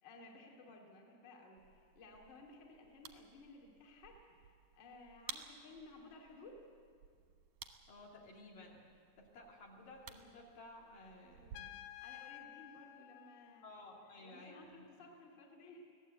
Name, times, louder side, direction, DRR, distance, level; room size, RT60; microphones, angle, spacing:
voice 1, 0.0-6.6 12.0-13.6 14.1-15.9, left 2 dB, 30° left, 0 dB, 2.3 m, -57 dB
sound 1, 1.6-11.6, right 8 dB, 65° right, 1.9 m, -56 dB
voice 2, 7.9-8.8 9.2-11.7 13.6-14.9, left 2 dB, 50° left, -2 dB, 4.0 m, -55 dB
Trumpet, 11.5-14.2, left 14 dB, 85° left, 2.2 m, -53 dB
24.0 x 17.5 x 8.1 m, 2.2 s
omnidirectional pair, 5.2 m